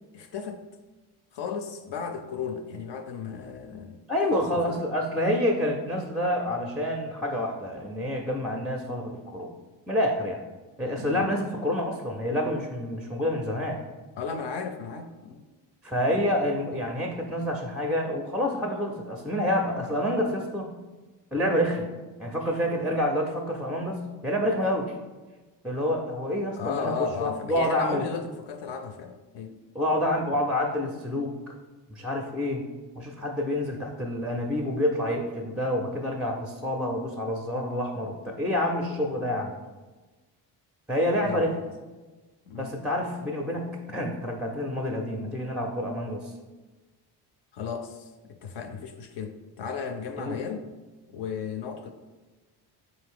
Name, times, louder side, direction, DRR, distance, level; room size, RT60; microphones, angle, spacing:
voice 1, 0.1-0.6 1.3-4.0 4.3-4.6 11.0-11.3 14.2-15.4 26.6-29.6 41.2-41.4 42.5-42.8 47.5-50.7 51.1-51.9, left 6 dB, 60° left, 6 dB, 0.5 m, -35 dB
voice 2, 4.1-9.5 9.9-10.4 10.8-13.8 15.8-20.7 21.3-21.9 22.2-24.9 25.6-26.9 27.2-28.1 29.7-31.6 31.9-32.7 33.0-39.6 40.9-41.6 42.6-46.3 50.2-50.4, left 1 dB, ahead, 2 dB, 0.4 m, -28 dB
3.8 x 2.7 x 3.6 m, 1.2 s
supercardioid pair, 60°, 47 cm